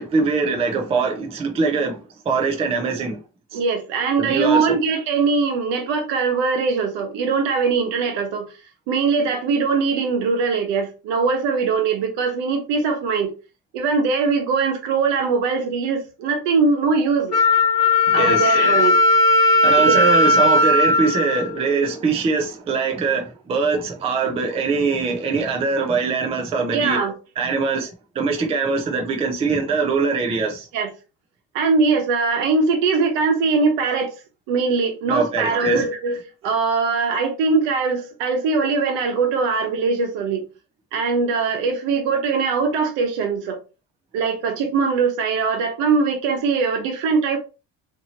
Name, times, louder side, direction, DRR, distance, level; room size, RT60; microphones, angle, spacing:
voice 1, 0.0-2.0 2.3-3.2 3.5-3.6 4.2-4.8 18.1-18.5 19.6-27.0 27.4-27.9 28.2-30.7 35.1-35.8, right 4 dB, 15° right, 0.3 m, -22 dB
voice 2, 3.5-8.5 8.9-13.3 13.7-17.4 18.1-19.0 19.8-20.7 26.7-27.1 30.7-30.9 31.5-34.1 34.5-40.5 40.9-43.6 44.1-47.4, right 4 dB, 85° right, 1.0 m, -21 dB
Wind instrument woodwind instrument, 17.3-22.1, left 2 dB, 35° left, 1.0 m, -17 dB
2.8 x 2.6 x 2.7 m
cardioid pair, 160°, 42 cm